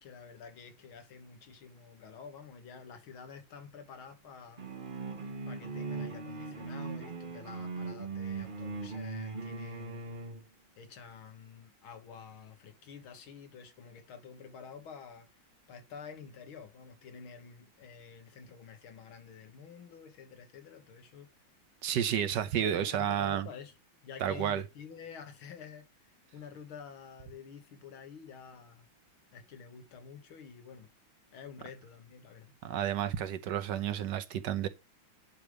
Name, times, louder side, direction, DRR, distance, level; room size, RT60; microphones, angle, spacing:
voice 1, 0.0-4.7 5.5-10.2 10.8-15.3 15.7-21.3 22.2-23.7 24.0-28.9 29.3-30.9 31.3-32.5, left 6 dB, 90° left, 2.3 m, -49 dB
sound 1, 4.6-10.4, right 4 dB, 35° right, 0.8 m, -39 dB
voice 2, 21.8-23.5 24.2-24.6 32.6-34.7, right 10 dB, 70° right, 1.2 m, -31 dB
10.0 x 3.4 x 6.3 m
omnidirectional pair, 2.2 m